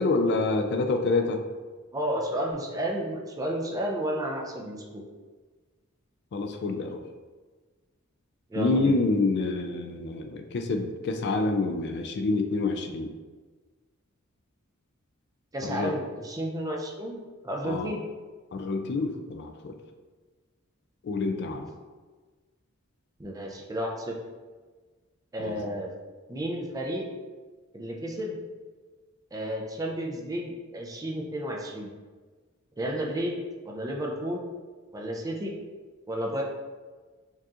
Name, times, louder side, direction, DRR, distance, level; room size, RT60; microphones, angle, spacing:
voice 1, 0.0-1.4 6.3-7.0 8.5-13.1 15.6-15.9 17.6-17.9 18.5-19.7 21.0-21.7 25.4-25.6, left 3 dB, 55° left, 5 dB, 0.3 m, -27 dB
voice 2, 1.9-5.0 8.5-8.9 15.5-18.0 23.2-24.2 25.3-25.9 26.3-27.1 27.7-28.4 29.3-31.9 32.8-33.4 33.7-34.5 34.9-35.5 36.1-36.4, equal, 15° right, 0 dB, 0.4 m, -32 dB
4.5 x 2.8 x 2.4 m, 1.4 s
head